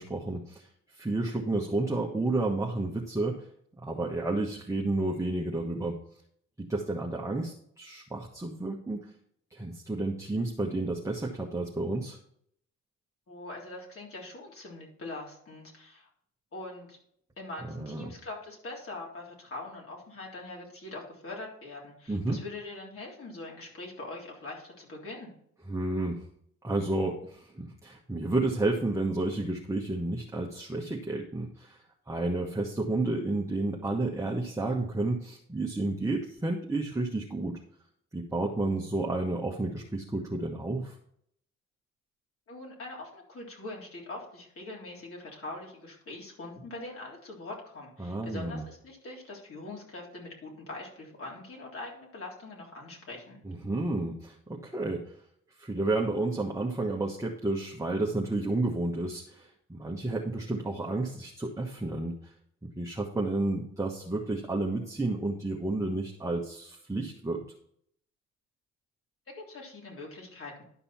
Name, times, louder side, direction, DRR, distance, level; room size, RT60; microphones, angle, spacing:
voice 1, 0.0-3.4 3.8-6.0 6.6-9.1 9.5-12.2 17.6-18.1 22.1-22.4 25.7-26.2 26.6-37.6 38.1-40.9 48.0-48.6 53.4-55.1 55.6-62.3 62.6-67.4, right 2 dB, 10° right, -1 dB, 1.2 m, -31 dB
voice 2, 13.3-16.1 16.5-17.0 17.4-25.3 42.5-53.4 69.3-70.6, left 2 dB, 45° left, -2 dB, 3.5 m, -43 dB
11.5 x 5.4 x 4.3 m, 0.66 s
cardioid pair, 90°, 30 cm